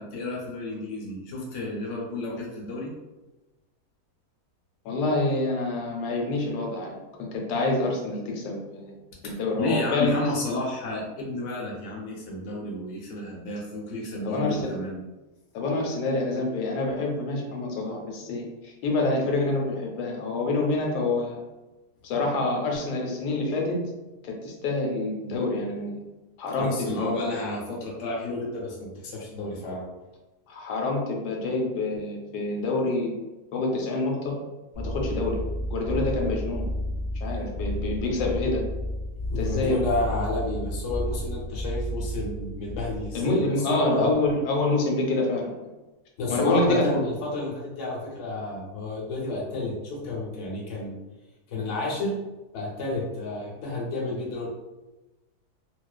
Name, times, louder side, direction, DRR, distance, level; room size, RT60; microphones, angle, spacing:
voice 1, 0.0-2.9 9.6-15.0 26.6-29.9 39.3-44.1 46.2-51.0 51.5-52.2 52.5-54.5, left 2 dB, 60° left, -3 dB, 0.9 m, -31 dB
voice 2, 4.8-6.9 7.2-8.9 9.2-10.1 14.2-14.7 15.5-21.4 22.0-23.9 24.2-26.0 26.4-27.1 30.5-33.1 33.5-34.3 34.8-35.4 35.7-36.6 37.1-38.6 39.4-39.8 43.1-45.5 46.3-46.9, left 2 dB, 85° left, 1 dB, 1.2 m, -27 dB
sound 1, 34.7-43.2, equal, 40° right, 0.6 m, -32 dB
2.5 x 2.3 x 2.2 m, 1.1 s
omnidirectional pair, 1.7 m